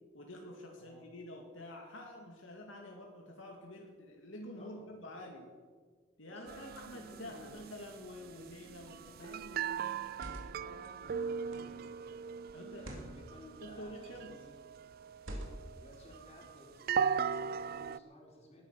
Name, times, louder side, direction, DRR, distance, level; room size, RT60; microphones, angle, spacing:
voice 1, 0.1-5.5 6.2-10.0 11.7-11.8 12.5-13.0 13.6-14.4, left 1 dB, 75° left, 1 dB, 2.1 m, -48 dB
voice 2, 0.7-1.1 4.6-5.2 6.2-7.6 10.6-12.1 12.7-14.7 15.7-18.7, left 1 dB, 35° left, -1 dB, 4.1 m, -57 dB
sound 1, 6.5-18.0, right 7 dB, 50° right, 0.4 m, -39 dB
sound 2, 8.8-9.1 9.9-10.7 11.5-11.8 12.7-13.1 14.0-14.4 15.2-15.8, right 1 dB, 80° right, 3.3 m, -46 dB
19.5 x 10.5 x 6.2 m, 1.5 s
head